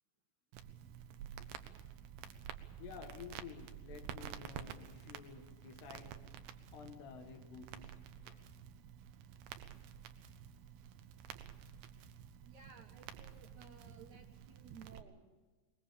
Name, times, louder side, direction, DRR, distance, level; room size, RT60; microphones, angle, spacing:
Crackle, 0.5-15.0, right 9 dB, 80° right, 2.8 m, -51 dB
voice 1, 2.8-6.4 6.7-8.0 8.3-8.5 11.7-11.8, left 7 dB, 85° left, 3.7 m, -52 dB
voice 2, 12.5-15.2, right 5 dB, 60° right, 2.5 m, -56 dB
22.5 x 21.5 x 7.0 m
omnidirectional pair, 4.6 m